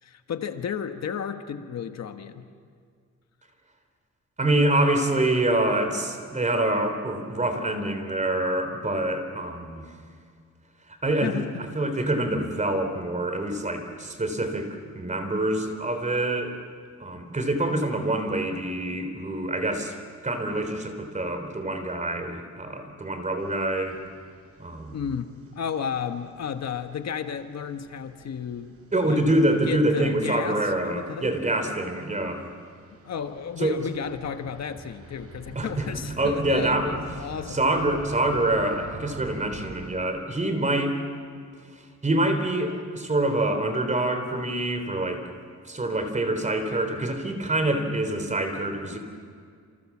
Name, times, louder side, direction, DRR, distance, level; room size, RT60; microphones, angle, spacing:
voice 1, 0.0-2.5 11.2-11.6 17.1-17.2 24.9-25.3 25.5-28.8 29.0-29.2 29.6-31.3 33.0-37.6, left 7 dB, 60° left, 7 dB, 1.4 m, -33 dB
voice 2, 4.4-9.9 11.0-11.5 11.7-16.6 17.0-20.0 20.2-24.0 24.6-25.0 28.9-32.5 33.6-33.7 35.6-35.9 36.2-37.0 37.5-41.0 41.7-45.2 45.6-49.0, right 1 dB, 25° right, 7 dB, 3.6 m, -26 dB
sound 1, 23.4-40.0, right 3 dB, 50° right, 5.3 m, -46 dB
28.5 x 28.5 x 7.4 m, 2.1 s
cardioid pair, 130°, 30 cm